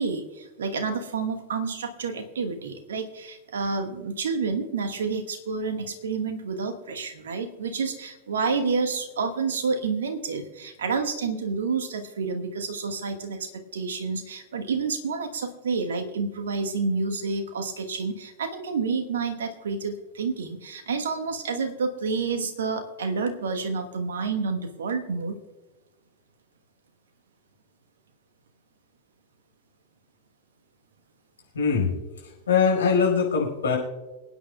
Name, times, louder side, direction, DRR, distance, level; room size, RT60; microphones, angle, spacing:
voice 1, 0.0-25.4, right 4 dB, 65° right, 6 dB, 1.2 m, -29 dB
voice 2, 31.5-31.9 32.2-33.8, left 6 dB, 70° left, -1 dB, 5.0 m, -22 dB
27.5 x 9.2 x 2.3 m, 1.1 s
figure-of-eight pair, 90°, 0 cm